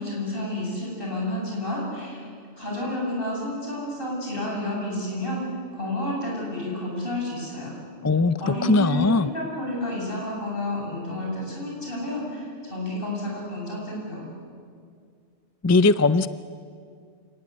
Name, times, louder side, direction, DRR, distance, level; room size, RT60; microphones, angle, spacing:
voice 1, 0.0-2.3 2.5-5.4 5.7-7.7 8.4-14.2, left 1 dB, 50° left, -3 dB, 8.3 m, -30 dB
voice 2, 8.0-9.3 15.6-16.3, left 3 dB, 25° left, 14 dB, 0.3 m, -20 dB
28.0 x 18.5 x 9.8 m, 2.2 s
omnidirectional pair, 1.2 m